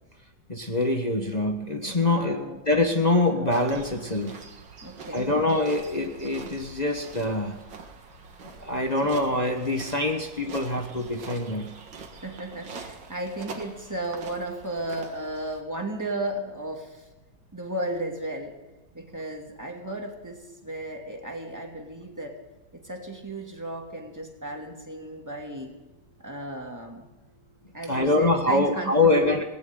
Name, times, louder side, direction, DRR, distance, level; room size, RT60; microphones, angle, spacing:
voice 1, 0.5-4.4 5.1-7.6 8.6-11.7 27.9-29.4, left 2 dB, 25° left, 3 dB, 1.2 m, -24 dB
voice 2, 2.0-2.6 4.8-5.4 9.0-9.1 12.2-17.0 17.5-18.6 18.9-22.4 22.7-25.7 26.2-27.1 27.7-29.4, right 1 dB, 10° right, 1 dB, 2.5 m, -34 dB
sound 1, 3.5-15.6, right 4 dB, 75° right, 2.4 m, -44 dB
19.5 x 18.5 x 3.9 m, 1.1 s
omnidirectional pair, 2.1 m